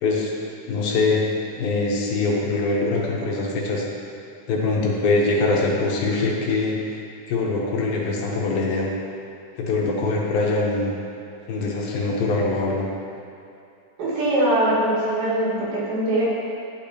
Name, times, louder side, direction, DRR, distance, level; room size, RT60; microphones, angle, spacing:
voice 1, 0.0-0.3 0.7-1.2 1.6-3.8 4.5-8.9 9.6-10.9 11.5-12.9, left 3 dB, 75° left, -3 dB, 2.5 m, -23 dB
voice 2, 14.0-16.2, right 1 dB, 75° right, -8 dB, 3.4 m, -22 dB
9.8 x 6.9 x 2.8 m, 2.6 s
omnidirectional pair, 4.3 m